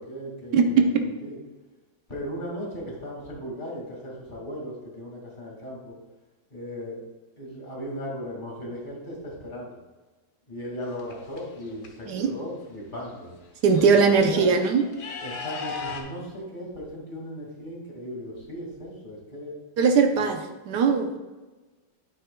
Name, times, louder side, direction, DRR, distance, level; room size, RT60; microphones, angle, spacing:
voice 1, 0.0-0.8 1.2-1.4 2.1-5.9 6.5-7.0 7.4-9.8 10.5-13.3 13.7-14.5 15.2-19.5 20.1-20.3, equal, 25° left, -3 dB, 2.1 m, -37 dB
voice 2, 0.5-1.0 12.1-12.3 13.6-14.9 19.8-21.2, right 5 dB, 70° right, 6 dB, 1.2 m, -20 dB
sound 1, 10.8-11.9 13.0-13.1 13.4-16.0, left 5 dB, 60° left, 1.5 m, -38 dB
8.9 x 8.5 x 2.3 m, 1.2 s
omnidirectional pair, 2.1 m